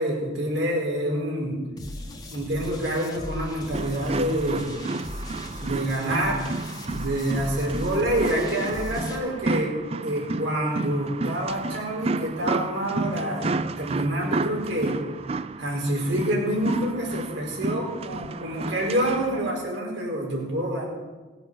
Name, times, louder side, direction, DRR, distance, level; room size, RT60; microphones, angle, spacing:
voice 1, 0.0-1.6 2.3-4.7 5.6-6.5 6.9-15.0 15.6-20.9, right 1 dB, 70° right, -2 dB, 4.5 m, -27 dB
sound 1, 1.8-9.2, left 1 dB, 20° left, 1.8 m, -37 dB
sound 2, 3.7-19.6, right 3 dB, 30° right, 0.3 m, -31 dB
18.5 x 7.9 x 6.5 m, 1.3 s
head